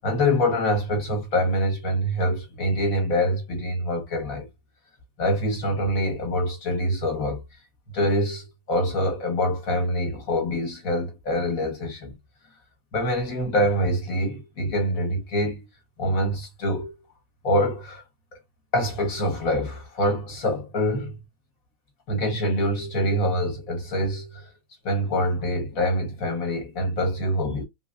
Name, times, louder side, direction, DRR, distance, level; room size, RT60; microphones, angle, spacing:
voice 1, 0.0-4.5 5.2-7.4 7.9-12.1 12.9-15.6 16.0-16.9 17.4-18.0 18.7-21.2 22.1-24.5 24.8-27.6, equal, 50° left, 1.3 m, -25 dB
3.8 x 2.6 x 2.4 m
omnidirectional pair, 2.2 m